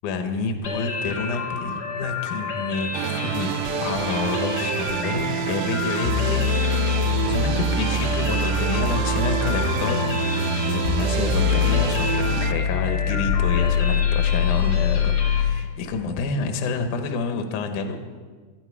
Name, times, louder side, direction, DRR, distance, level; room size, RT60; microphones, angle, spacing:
voice 1, 0.0-6.8 7.2-10.3 10.6-18.0, left 4 dB, 65° left, 6 dB, 2.4 m, -28 dB
sound 1, 0.6-15.4, left 4 dB, 45° left, 1.4 m, -31 dB
sound 2, 2.9-12.5, right 11 dB, 90° right, 1.8 m, -28 dB
sound 3, 6.1-15.6, left 6 dB, 85° left, 2.5 m, -23 dB
18.0 x 13.0 x 4.8 m, 1.5 s
omnidirectional pair, 4.4 m